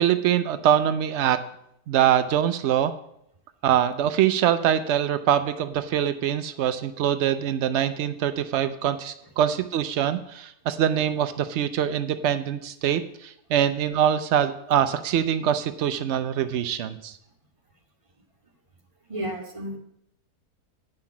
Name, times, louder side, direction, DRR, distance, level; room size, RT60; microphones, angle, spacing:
voice 1, 0.0-1.4 1.9-2.9 3.6-17.2, right 10 dB, 90° right, 11 dB, 0.6 m, -24 dB
voice 2, 19.1-19.8, right 1 dB, 20° right, 1 dB, 1.7 m, -32 dB
9.0 x 5.8 x 7.3 m, 0.75 s
omnidirectional pair, 1.8 m